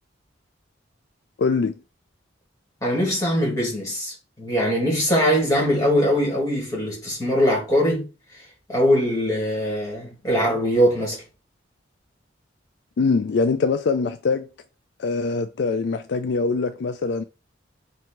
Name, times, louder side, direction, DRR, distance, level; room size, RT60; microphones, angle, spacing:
voice 1, 1.4-1.8 13.0-14.5 15.0-17.2, left 4 dB, 60° left, 0.3 m, -23 dB
voice 2, 2.8-8.4 8.7-11.2, equal, 15° left, 2.1 m, -22 dB
4.5 x 2.7 x 4.3 m
head